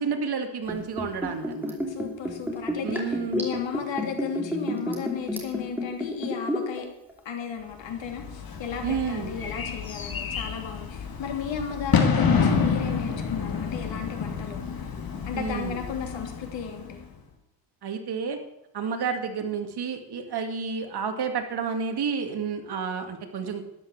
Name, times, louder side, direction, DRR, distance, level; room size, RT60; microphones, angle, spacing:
voice 1, 0.0-1.8 2.8-3.5 8.8-9.3 15.3-15.8 17.8-18.4 18.7-23.7, right 6 dB, 55° right, 5 dB, 2.3 m, -30 dB
Liquid, 0.6-6.8 7.1-7.2, left 1 dB, 5° right, 2.8 m, -30 dB
voice 2, 1.9-6.9 7.2-14.9 15.2-17.0, left 7 dB, 75° left, 4 dB, 3.1 m, -35 dB
Bird / Fireworks, 7.9-17.1, left 6 dB, 50° left, 2.3 m, -28 dB
13.0 x 10.5 x 7.3 m, 0.89 s
cardioid pair, 145°, 45 cm